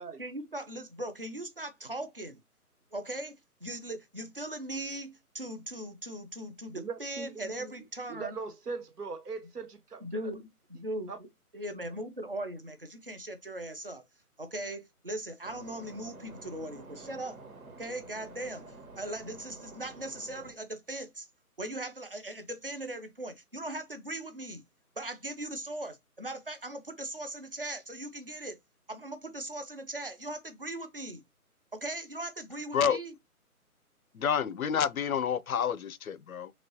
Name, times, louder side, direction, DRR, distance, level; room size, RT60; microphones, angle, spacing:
voice 1, 0.2-2.4 2.9-8.4 10.0-11.1 11.5-14.0 14.4-17.4 17.8-18.6 19.0-21.3 21.6-24.6 25.0-28.6 28.9-31.2 31.7-33.1, right 1 dB, 40° right, 0.4 m, -39 dB
voice 2, 6.7-7.7 8.1-10.3 11.1-11.2, right 4 dB, 90° right, 1.1 m, -40 dB
sound 1, 15.4-20.5, right 2 dB, 70° right, 1.4 m, -49 dB
voice 3, 34.1-36.5, left 7 dB, 65° left, 0.5 m, -29 dB
4.0 x 3.0 x 2.9 m
figure-of-eight pair, 170°, 46 cm